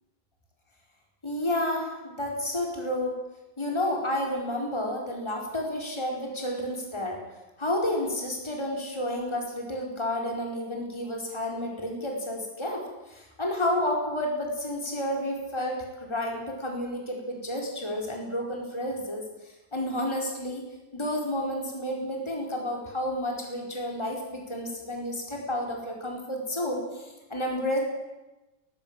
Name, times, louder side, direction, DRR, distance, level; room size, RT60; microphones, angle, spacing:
voice 1, 1.2-3.2 3.6-7.2 7.6-12.8 13.1-19.2 19.7-20.6 20.9-27.8, left 1 dB, 15° left, 0 dB, 4.5 m, -30 dB
22.5 x 15.5 x 8.9 m, 1.1 s
omnidirectional pair, 2.0 m